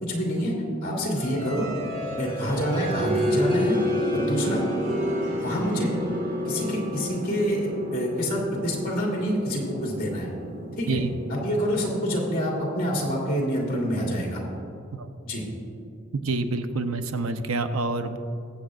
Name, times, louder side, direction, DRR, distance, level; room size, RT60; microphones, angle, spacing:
voice 1, 0.0-1.7 2.2-3.8 4.1-4.6 5.4-5.9 6.4-10.3 10.8-11.0 11.3-14.4 15.2-15.4, equal, 45° left, -3 dB, 2.4 m, -27 dB
sound 1, 1.2-13.7, equal, 45° right, 1.7 m, -30 dB
voice 2, 16.2-18.2, right 3 dB, 85° right, 8 dB, 0.7 m, -27 dB
22.0 x 7.8 x 2.4 m, 2.6 s
head